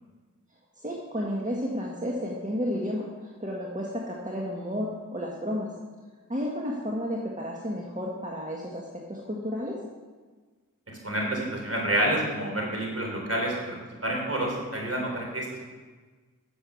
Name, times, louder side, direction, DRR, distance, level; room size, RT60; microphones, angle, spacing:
voice 1, 0.8-5.7 6.3-9.8, equal, 25° right, -3 dB, 1.8 m, -32 dB
voice 2, 11.0-13.8 14.0-15.5, right 1 dB, 45° right, -1 dB, 3.8 m, -28 dB
9.9 x 7.1 x 7.2 m, 1.4 s
cardioid pair, 40°, 33 cm